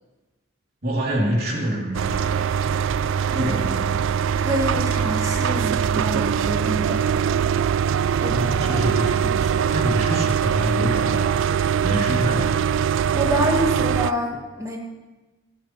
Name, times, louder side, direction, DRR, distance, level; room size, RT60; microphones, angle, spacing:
voice 1, 0.8-2.5 3.3-4.1 8.1-12.6, equal, 50° right, -3 dB, 3.1 m, -26 dB
sound 1, 1.9-14.1, right 8 dB, 65° right, 0.3 m, -22 dB
voice 2, 4.4-7.4 8.2-8.3 8.7-8.9 9.2-9.6 13.1-14.8, equal, 15° right, 0 dB, 1.5 m, -27 dB
25.0 x 9.3 x 3.1 m, 1.2 s
head